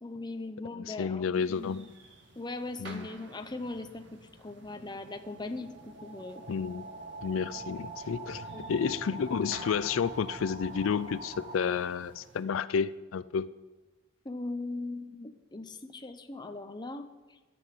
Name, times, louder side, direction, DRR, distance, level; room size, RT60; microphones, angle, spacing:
voice 1, 0.0-1.9 2.4-6.4 8.5-8.9 14.2-17.4, left 2 dB, 20° left, 0.8 m, -40 dB
voice 2, 0.8-1.9 2.8-3.1 6.5-6.8 7.2-13.5, left 6 dB, 85° left, 0.4 m, -31 dB
sound 1, 1.4-12.4, right 2 dB, 60° right, 2.0 m, -51 dB
sound 2, 4.6-12.3, right 2 dB, 35° right, 1.3 m, -45 dB
12.0 x 7.9 x 9.5 m
head